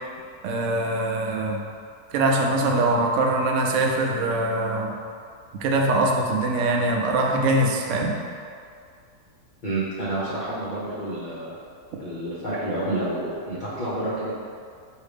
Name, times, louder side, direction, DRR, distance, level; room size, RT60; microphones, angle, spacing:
voice 1, 0.4-1.6 2.1-4.9 5.5-8.2, right 2 dB, 70° right, 0 dB, 0.7 m, -23 dB
voice 2, 9.6-11.5 12.0-14.3, right 1 dB, 45° left, -9 dB, 0.6 m, -29 dB
5.0 x 2.8 x 3.3 m, 2.2 s
omnidirectional pair, 1.7 m